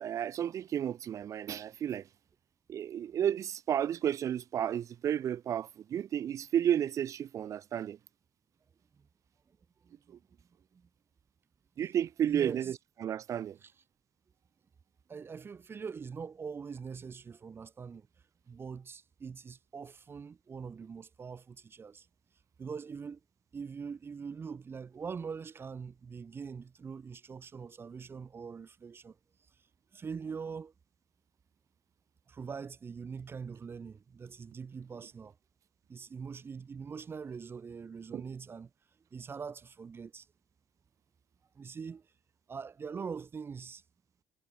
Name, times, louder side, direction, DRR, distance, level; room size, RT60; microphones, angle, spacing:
voice 1, 0.0-2.1 2.7-8.0 10.1-10.2 11.8-12.8 13.0-13.6 38.1-38.2, right 9 dB, 50° right, 0.6 m, -32 dB
voice 2, 9.8-10.2 10.7-10.9 12.3-12.7 13.6-13.7 15.1-18.1 18.5-22.1 22.6-23.2 23.5-29.2 29.9-30.7 32.3-35.3 35.9-38.7 39.1-40.3 41.5-42.1 42.5-43.8, right 6 dB, 35° right, 1.4 m, -43 dB
supercardioid pair, 75°, 7 cm